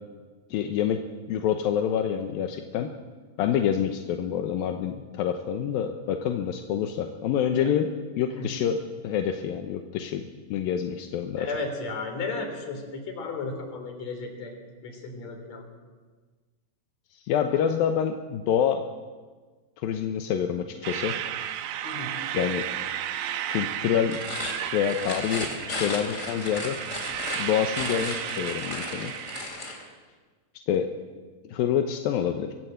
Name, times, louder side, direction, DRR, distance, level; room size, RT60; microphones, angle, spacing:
voice 1, 0.5-1.0 1.3-2.9 3.4-7.9 8.2-11.5 17.1-18.8 19.8-21.2 22.3-22.7 23.5-24.2 24.7-26.8 27.4-29.1 30.7-30.9 31.4-32.5, left 9 dB, 75° left, 5 dB, 2.3 m, -27 dB
voice 2, 11.4-14.5 14.8-15.6 21.8-22.2, left 3 dB, 40° left, 4 dB, 4.4 m, -34 dB
sound 1, 20.8-29.4, right 11 dB, 75° right, 2.6 m, -33 dB
sound 2, 24.1-29.8, left 2 dB, 20° left, 3.3 m, -35 dB
24.0 x 17.0 x 8.0 m, 1.4 s
omnidirectional pair, 5.1 m